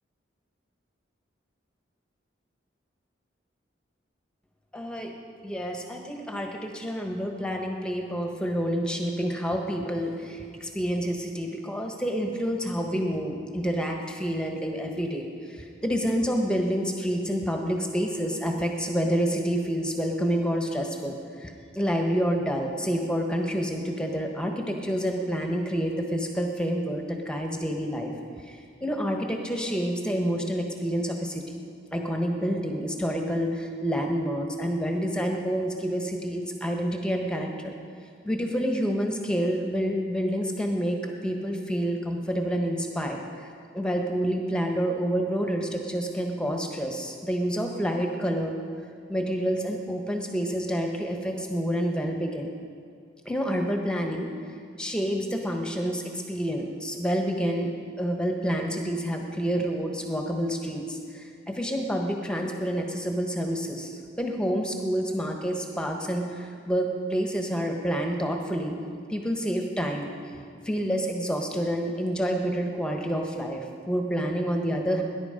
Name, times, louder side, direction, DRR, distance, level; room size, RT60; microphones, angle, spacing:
voice 1, 4.7-5.1 5.4-28.1 28.4-31.6 31.9-37.7 38.2-48.6 49.1-52.5 53.2-54.3 54.8-68.8 69.1-70.1 70.6-75.0, equal, 5° left, 2 dB, 1.3 m, -28 dB
19.0 x 10.5 x 5.2 m, 2.4 s
head